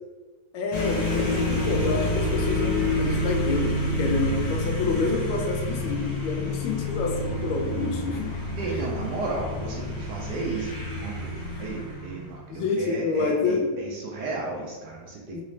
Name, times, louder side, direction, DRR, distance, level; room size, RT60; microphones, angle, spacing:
voice 1, 0.5-8.3 12.5-13.7 15.3-15.4, left 4 dB, 90° left, 1 dB, 1.4 m, -28 dB
sound 1, 0.7-12.4, left 1 dB, 60° left, 1.2 m, -28 dB
voice 2, 8.6-11.3 11.6-15.4, right 3 dB, 70° right, -2 dB, 1.0 m, -33 dB
4.1 x 2.5 x 3.1 m, 1.3 s
omnidirectional pair, 2.1 m